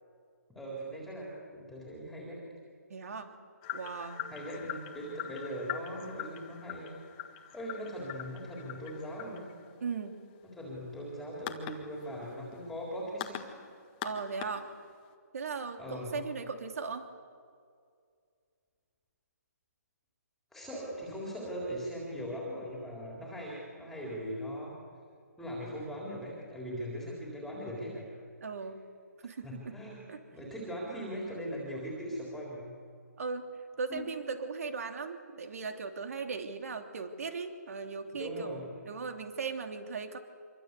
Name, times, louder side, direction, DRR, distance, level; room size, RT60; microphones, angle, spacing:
voice 1, 0.5-2.5 4.3-7.0 7.5-9.5 10.5-13.4 15.8-16.2 20.5-24.7 25.4-28.1 29.4-30.0 30.3-32.7 33.9-34.1 38.1-38.8, equal, ahead, -4 dB, 3.9 m, -40 dB
voice 2, 2.9-3.4 3.7-4.3 9.8-10.2 14.0-14.7 15.3-17.1 28.4-28.8 29.2-29.8 30.1-30.2 33.2-40.2, right 5 dB, 55° right, 6 dB, 3.0 m, -38 dB
sound 1, 3.6-15.1, left 11 dB, 20° left, 1.7 m, -43 dB
26.0 x 24.5 x 8.3 m, 2.2 s
hypercardioid pair, 165°, 9 cm